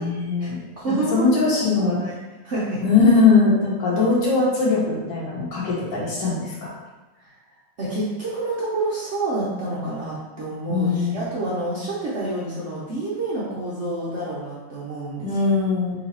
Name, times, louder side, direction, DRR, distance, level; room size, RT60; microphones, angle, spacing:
voice 1, 0.0-2.0 2.8-6.8 10.7-11.2 15.2-15.9, left 4 dB, 60° left, -6 dB, 1.9 m, -20 dB
voice 2, 0.8-1.3 1.6-2.1 2.4-2.8 7.2-7.3 7.8-15.3, right 2 dB, 90° right, -7 dB, 0.6 m, -28 dB
3.9 x 3.0 x 4.2 m, 1.2 s
omnidirectional pair, 2.3 m